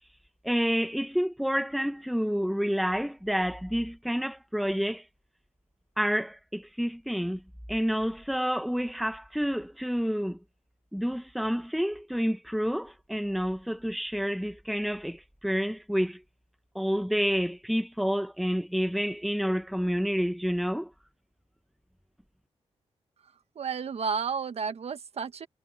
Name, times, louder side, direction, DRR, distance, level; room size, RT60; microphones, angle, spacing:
voice 1, 0.4-5.0 6.0-7.4 7.7-10.4 10.9-16.2 16.7-20.9, equal, ahead, 1.0 m, -29 dB
voice 2, 23.5-25.5, right 6 dB, 60° right, 1.4 m, -32 dB
cardioid pair, 100°, 12 cm